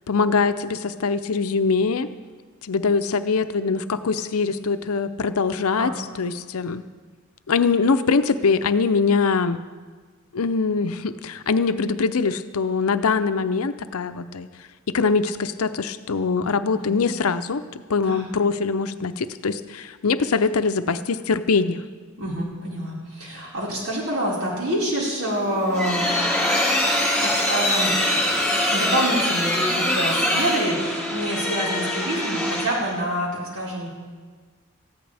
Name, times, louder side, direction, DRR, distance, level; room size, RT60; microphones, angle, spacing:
voice 1, 0.1-2.1 2.6-5.9 6.2-6.8 7.5-9.6 10.3-14.5 14.9-17.6 17.9-21.8, left 4 dB, 85° left, 11 dB, 0.6 m, -23 dB
voice 2, 22.2-26.1 27.2-27.9 28.7-33.9, right 1 dB, 80° right, -5 dB, 4.9 m, -27 dB
sound 1, 25.3-32.9, left 1 dB, 5° left, 4.9 m, -23 dB
19.0 x 14.5 x 3.5 m, 1.5 s
head